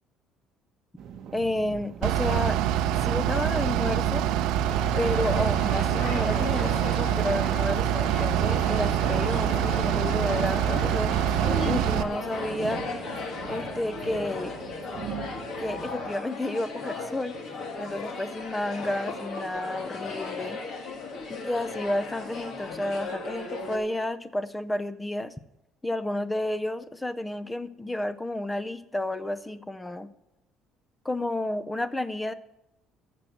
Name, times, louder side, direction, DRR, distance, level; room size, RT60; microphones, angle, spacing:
sound 1, 1.0-16.1, right 8 dB, 45° right, 1.3 m, -39 dB
voice 1, 1.3-2.6 3.0-4.3 5.0-11.1 11.6-12.9 13.5-14.5 15.6-17.4 17.8-20.6 21.3-25.3 25.8-30.1 31.0-32.3, left 1 dB, 10° left, 12 dB, 0.5 m, -31 dB
Bus / Idling, 2.0-12.0, right 10 dB, 75° right, 0.5 m, -25 dB
sound 2, 4.7-23.8, left 4 dB, 45° left, 2.2 m, -36 dB
14.0 x 7.6 x 7.2 m, 0.88 s
cardioid pair, 175°, 0 cm